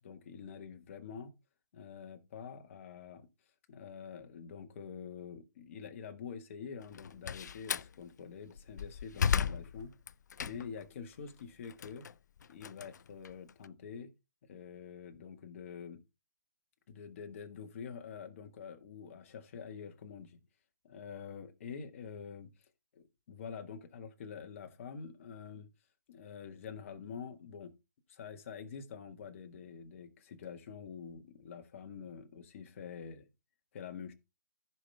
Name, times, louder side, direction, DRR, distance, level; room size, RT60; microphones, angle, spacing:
voice 1, 0.0-1.3 1.7-3.3 3.7-9.9 10.4-12.1 12.5-14.1 14.4-16.0 16.9-20.4 20.8-25.7 26.1-27.7 28.1-33.3 33.7-34.1, left 6 dB, 45° left, 1.7 m, -46 dB
Slam, 6.8-7.9 8.5-10.9 11.3-13.7, left 7 dB, 65° left, 0.4 m, -35 dB
14.5 x 5.9 x 3.4 m
hypercardioid pair, 150°, 10 cm